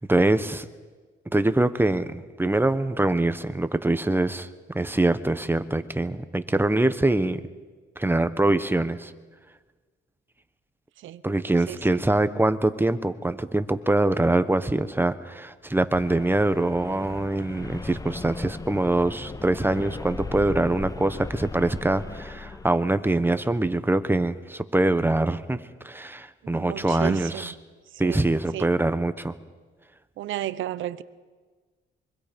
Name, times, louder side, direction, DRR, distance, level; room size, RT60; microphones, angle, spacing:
voice 1, 0.1-0.6 1.3-4.5 4.7-7.4 8.0-9.1 11.2-25.6 25.8-27.5 28.0-29.3, right 2 dB, 10° right, 1.1 m, -24 dB
voice 2, 11.7-12.0 26.4-27.5 27.9-28.7 30.2-31.0, right 13 dB, 80° right, 0.8 m, -34 dB
sound 1, 15.9-23.2, left 3 dB, 15° left, 0.8 m, -38 dB
25.5 x 24.0 x 5.3 m
cardioid pair, 90°, 20 cm